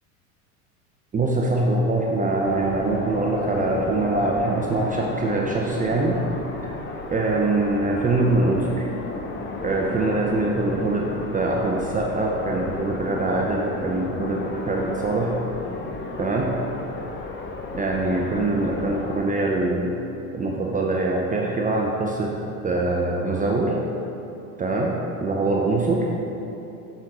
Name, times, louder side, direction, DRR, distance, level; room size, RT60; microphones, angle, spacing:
voice 1, 1.1-6.2 7.1-8.8 9.6-15.3 16.2-16.5 17.7-19.9 20.3-22.3 22.6-23.7 24.6-26.1, right 2 dB, 20° right, -2 dB, 0.7 m, -23 dB
sound 1, 2.4-19.2, left 3 dB, 25° left, 0.7 m, -34 dB
7.2 x 5.6 x 3.8 m, 3.0 s
hypercardioid pair, 90°, 43 cm